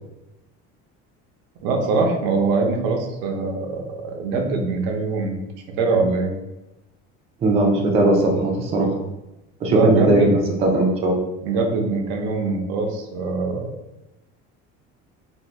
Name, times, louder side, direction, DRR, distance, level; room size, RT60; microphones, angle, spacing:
voice 1, 1.6-5.4 5.8-6.4 9.7-10.3 11.4-13.7, right 3 dB, 85° right, 2 dB, 0.7 m, -22 dB
voice 2, 7.4-9.0 9.6-10.3 10.6-11.1, right 2 dB, 20° right, 0 dB, 0.4 m, -18 dB
2.6 x 2.6 x 3.2 m, 0.96 s
cardioid pair, 175°, 30 cm